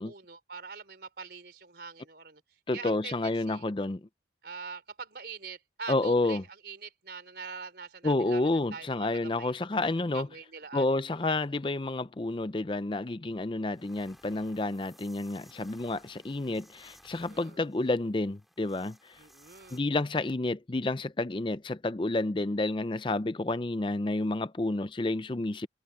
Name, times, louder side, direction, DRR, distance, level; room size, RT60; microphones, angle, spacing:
voice 1, 0.0-2.4 2.7-3.7 4.4-9.5 10.1-10.9 17.3-17.6 19.2-19.8, right 5 dB, 60° right, 4.0 m, -44 dB
voice 2, 2.7-4.0 5.9-6.4 8.0-10.3 10.7-19.2 19.7-25.7, left 2 dB, 25° left, 0.5 m, -30 dB
sound 1, 13.3-13.4 13.7-19.8, equal, ahead, 2.5 m, -59 dB
head